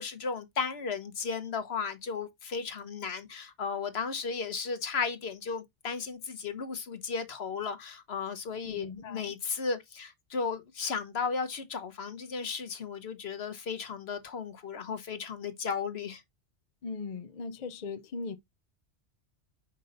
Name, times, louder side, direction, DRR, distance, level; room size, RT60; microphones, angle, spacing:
voice 1, 0.0-16.2, left 5 dB, 65° left, 1.3 m, -35 dB
voice 2, 8.6-9.3 16.8-18.4, left 4 dB, 50° left, 0.6 m, -39 dB
5.5 x 5.3 x 3.9 m
omnidirectional pair, 1.2 m